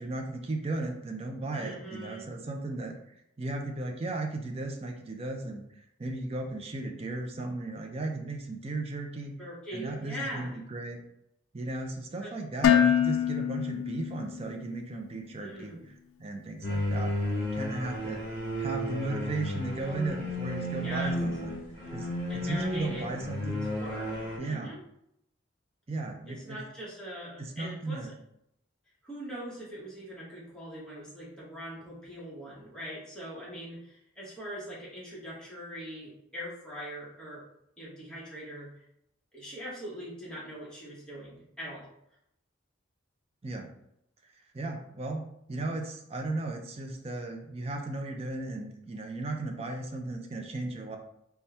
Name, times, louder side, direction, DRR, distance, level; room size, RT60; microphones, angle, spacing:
voice 1, 0.0-2.9 3.4-9.3 9.7-11.0 11.5-15.9 16.2-18.2 18.6-21.6 21.9-22.1 22.3-23.7 24.4-24.7 25.9-26.6 27.4-28.1 43.4-43.7 44.5-51.0, right 2 dB, 30° right, 2 dB, 0.5 m, -35 dB
voice 2, 1.5-2.3 9.4-10.6 12.2-12.3 15.4-15.9 20.8-21.2 22.3-23.1 23.7-24.8 26.3-28.1 29.0-37.5 37.8-38.8 39.3-41.9, equal, 5° left, -7 dB, 1.1 m, -42 dB
Dishes pots and pans, 12.6-14.7, left 9 dB, 90° left, 0.3 m, -25 dB
sound 1, 16.6-24.4, equal, 45° left, 1.2 m, -33 dB
4.1 x 2.3 x 3.4 m, 0.77 s
head